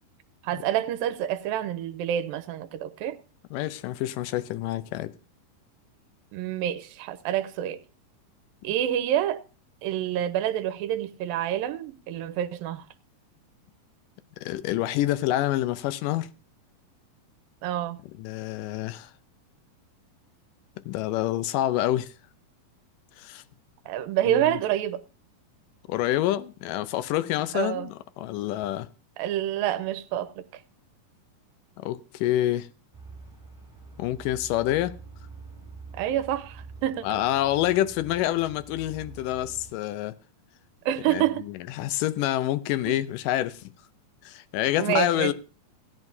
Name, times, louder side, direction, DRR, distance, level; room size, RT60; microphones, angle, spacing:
voice 1, 0.4-3.2 6.3-7.8 8.6-9.4 9.8-12.9 17.6-18.0 23.9-25.0 27.5-27.9 29.2-30.6 35.9-37.2 40.9-41.5 42.9-43.0 44.8-45.3, right 11 dB, 80° right, 2.4 m, -28 dB
voice 2, 3.5-5.1 14.4-16.3 18.2-19.1 20.9-22.1 23.2-23.4 24.3-24.6 25.9-28.9 31.8-32.7 34.0-34.9 37.0-40.1 41.1-41.2 41.8-43.7 44.3-45.3, left 14 dB, 75° left, 2.1 m, -27 dB
sound 1, 32.9-39.7, right 4 dB, 10° right, 5.5 m, -46 dB
17.0 x 11.0 x 2.7 m
omnidirectional pair, 4.1 m